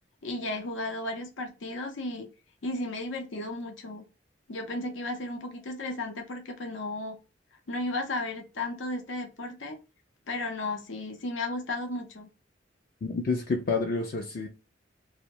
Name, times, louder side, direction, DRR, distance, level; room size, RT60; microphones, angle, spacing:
voice 1, 0.2-2.3 2.6-4.0 4.5-7.2 7.7-9.8 10.3-12.3, left 2 dB, 90° left, 0.7 m, -34 dB
voice 2, 13.0-14.5, left 4 dB, 50° left, 0.4 m, -29 dB
2.6 x 2.1 x 2.8 m
head